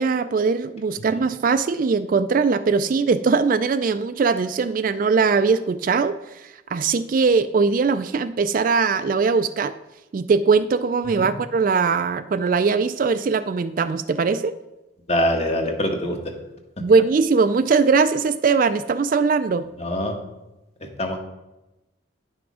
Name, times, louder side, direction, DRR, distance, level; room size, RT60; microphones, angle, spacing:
voice 1, 0.0-9.7 10.1-14.5 16.8-19.7, right 5 dB, 40° right, 12 dB, 0.3 m, -20 dB
voice 2, 15.1-16.2 19.8-20.2 21.0-21.2, equal, 30° left, 4 dB, 1.2 m, -23 dB
10.5 x 6.1 x 4.8 m, 1.0 s
head